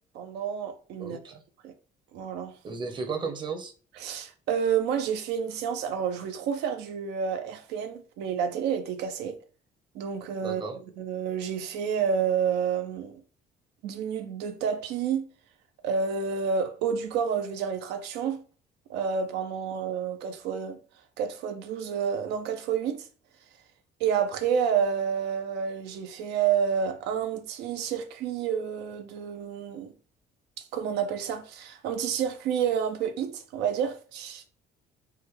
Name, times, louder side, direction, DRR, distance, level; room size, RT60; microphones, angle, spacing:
voice 1, 0.1-1.3 1.6-1.7 2.1-2.5 4.0-9.4 9.9-10.6 11.0-13.2 13.8-15.2 15.8-18.4 18.9-20.8 21.2-23.1 24.0-29.9 30.6-34.4, right 7 dB, 85° right, 0.4 m, -29 dB
voice 2, 1.0-1.4 2.6-3.7 10.4-10.8, right 4 dB, 25° right, 0.7 m, -34 dB
3.4 x 2.1 x 3.1 m
cardioid pair, 110°, 17 cm